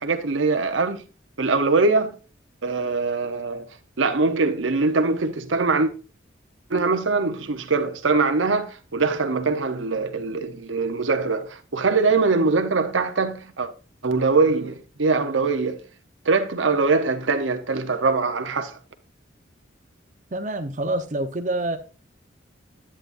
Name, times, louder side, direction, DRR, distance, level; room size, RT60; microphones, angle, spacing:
voice 1, 0.0-1.0 1.4-2.2 2.6-3.7 4.0-5.9 6.7-13.7 14.0-15.8 16.2-18.8, right 4 dB, 85° right, 0.9 m, -22 dB
voice 2, 20.3-21.8, right 2 dB, 40° right, 0.9 m, -26 dB
10.5 x 8.6 x 2.6 m
head